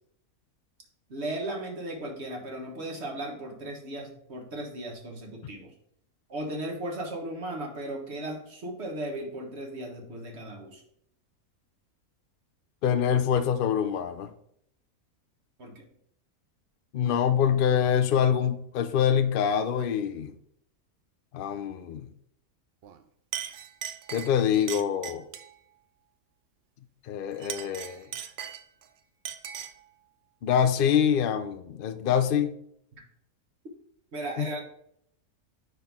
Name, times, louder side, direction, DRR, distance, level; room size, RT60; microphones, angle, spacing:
voice 1, 1.1-5.7 6.3-10.8 15.6-15.7 34.1-34.6, right 1 dB, 45° right, 1 dB, 1.6 m, -36 dB
voice 2, 12.8-14.3 16.9-20.3 21.3-22.1 24.1-25.2 27.1-28.0 30.4-32.5 34.4-34.5, left 8 dB, 90° left, 9 dB, 0.4 m, -25 dB
Chink clink, 22.8-23.0 23.3-25.5 27.3-28.9 29.2-29.8, right 9 dB, 80° right, 0.5 m, -38 dB
6.7 x 5.8 x 3.6 m, 0.70 s
omnidirectional pair, 1.6 m